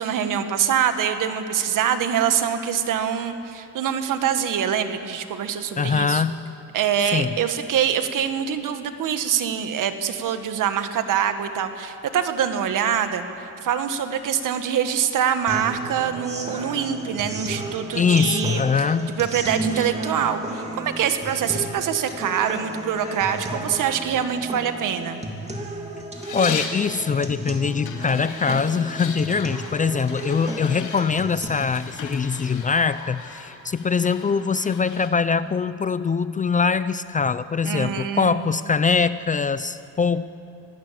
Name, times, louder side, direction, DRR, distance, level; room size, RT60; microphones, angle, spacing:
voice 1, 0.0-6.2 6.7-18.6 19.2-25.2 37.7-38.6, right 8 dB, 65° right, 8 dB, 1.7 m, -24 dB
voice 2, 5.8-6.4 7.0-7.3 17.9-19.2 19.7-19.9 26.3-40.3, left 5 dB, 25° left, 14 dB, 0.4 m, -23 dB
sound 1, 15.5-31.5, right 2 dB, 20° right, 2.9 m, -34 dB
sound 2, 26.1-26.8 27.8-35.1, left 6 dB, 60° left, 2.8 m, -37 dB
25.0 x 18.5 x 7.6 m, 2.7 s
cardioid pair, 125°, 34 cm